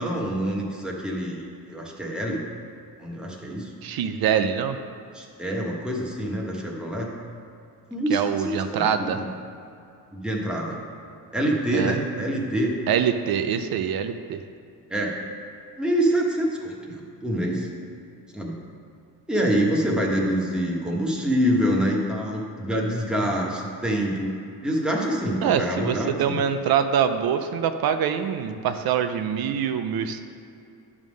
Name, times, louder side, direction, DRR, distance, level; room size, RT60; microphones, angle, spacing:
voice 1, 0.0-2.4 3.0-3.7 5.1-7.1 7.9-9.3 10.1-10.8 11.3-12.8 14.9-15.2 15.8-17.7 18.3-18.6 19.3-24.3 24.6-26.4, equal, ahead, -2 dB, 1.3 m, -26 dB
voice 2, 3.8-4.8 8.1-9.2 11.7-12.0 12.9-14.4 25.4-30.2, right 8 dB, 75° right, 8 dB, 0.6 m, -24 dB
10.5 x 3.7 x 6.2 m, 2.5 s
cardioid pair, 120°, 36 cm